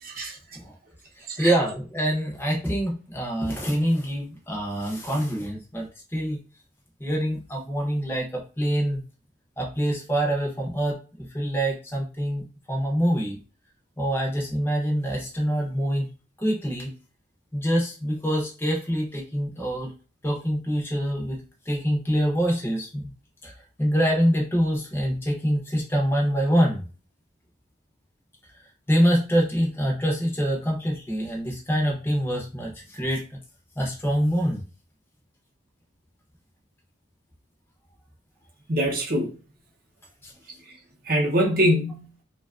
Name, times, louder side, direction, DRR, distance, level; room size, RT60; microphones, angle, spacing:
voice 1, 0.0-0.4 1.3-1.5 38.7-39.3 40.7-40.8 41.0-42.1, equal, 50° right, 0.7 m, -23 dB
voice 2, 1.4-5.9 6.1-6.4 7.0-9.0 9.6-13.4 14.0-16.0 16.4-16.9 17.5-19.9 20.2-23.1 23.4-23.5 23.8-26.8 28.9-33.2 33.8-34.6 40.2-40.3, equal, 10° left, 0.5 m, -25 dB
2.7 x 2.3 x 2.3 m
head